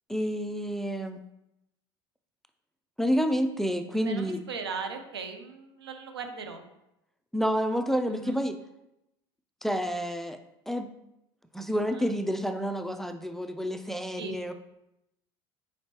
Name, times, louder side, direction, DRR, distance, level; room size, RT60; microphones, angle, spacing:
voice 1, 0.1-1.2 3.0-4.4 7.3-8.6 9.6-10.4 10.7-10.9 11.5-14.5, equal, ahead, 7 dB, 0.4 m, -29 dB
voice 2, 4.0-6.6 8.1-8.4 11.8-12.1 14.2-14.4, right 5 dB, 90° right, 6 dB, 0.5 m, -38 dB
4.2 x 4.2 x 2.9 m, 0.86 s
hypercardioid pair, 75°, 13 cm